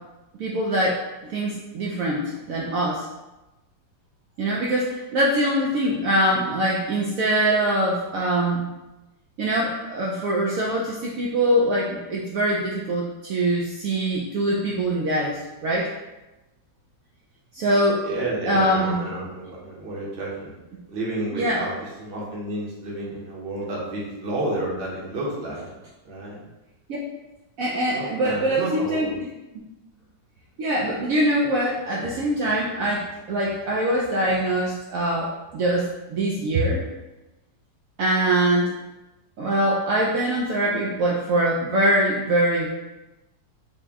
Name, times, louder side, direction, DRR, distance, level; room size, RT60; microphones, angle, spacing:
voice 1, 0.4-3.0 4.4-8.7 9.4-15.9 17.5-18.0 18.5-19.0 21.3-21.6 27.6-29.1 30.6-36.8 38.0-38.7 39.4-42.7, right 1 dB, 75° right, -4 dB, 0.7 m, -23 dB
voice 2, 18.0-20.6 20.9-25.7 26.0-26.4 27.9-29.1, right 1 dB, 45° right, -5 dB, 0.8 m, -31 dB
4.2 x 2.1 x 3.5 m, 1.0 s
omnidirectional pair, 2.0 m